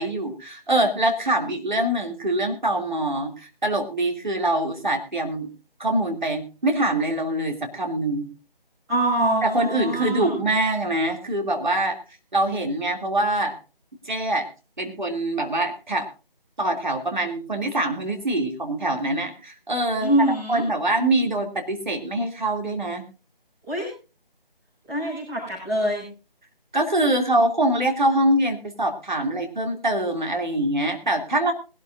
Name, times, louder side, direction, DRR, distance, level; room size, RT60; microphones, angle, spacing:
voice 1, 0.0-5.5 5.8-8.3 9.4-12.0 12.3-13.5 14.0-14.5 14.8-16.1 16.6-20.1 20.5-23.0 26.7-31.5, right 1 dB, 50° right, 3 dB, 2.8 m, -24 dB
voice 2, 8.9-10.4 20.0-20.6 23.7-23.9 24.9-26.1, right 1 dB, 10° right, -9 dB, 4.7 m, -24 dB
21.5 x 12.5 x 2.6 m, 0.32 s
figure-of-eight pair, 160°, 29 cm